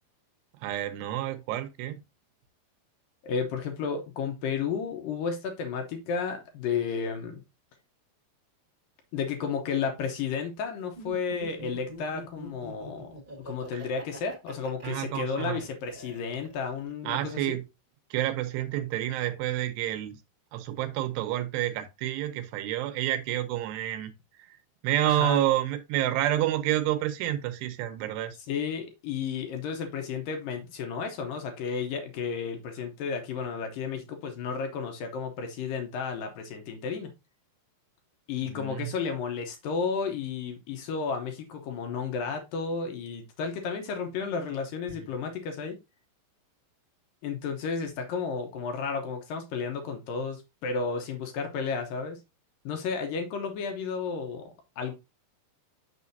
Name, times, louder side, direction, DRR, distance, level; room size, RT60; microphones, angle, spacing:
voice 1, 0.6-2.0 13.7-13.8 14.8-15.6 17.1-17.6 18.1-20.2 20.5-24.1 24.8-28.4 38.5-38.9 44.9-45.1, right 13 dB, 80° right, 2.8 m, -29 dB
voice 2, 3.2-7.4 9.1-17.6 25.0-25.4 28.5-37.1 38.3-45.8 47.2-52.2 52.7-54.9, left 5 dB, 75° left, 2.1 m, -32 dB
Laughter, 10.9-16.9, equal, 25° right, 1.0 m, -45 dB
6.4 x 6.1 x 2.7 m
omnidirectional pair, 5.1 m